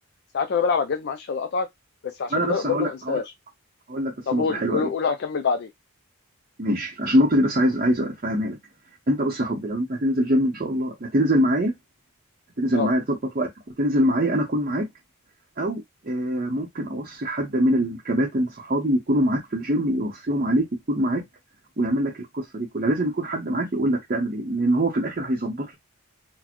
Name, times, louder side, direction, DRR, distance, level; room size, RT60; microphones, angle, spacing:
voice 1, 0.3-1.7 2.0-3.2 4.3-5.7 12.7-12.9, left 5 dB, 45° left, 0.3 m, -25 dB
voice 2, 2.3-3.2 3.9-4.9 6.6-8.6 9.1-11.7 12.6-13.5 13.8-14.9 15.6-21.2 21.8-25.7, equal, 40° right, 0.6 m, -24 dB
4.1 x 2.0 x 2.9 m
head